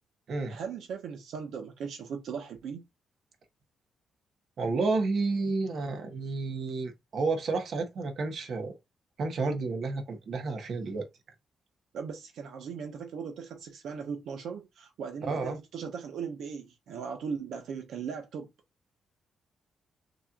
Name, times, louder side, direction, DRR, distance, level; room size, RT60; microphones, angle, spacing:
voice 1, 0.5-2.8 11.9-18.5, right 6 dB, 80° right, 1.1 m, -38 dB
voice 2, 4.6-8.7 9.2-11.1 15.2-15.6, right 3 dB, 55° right, 1.4 m, -31 dB
6.6 x 3.1 x 2.5 m
cardioid pair, 140°, 0 cm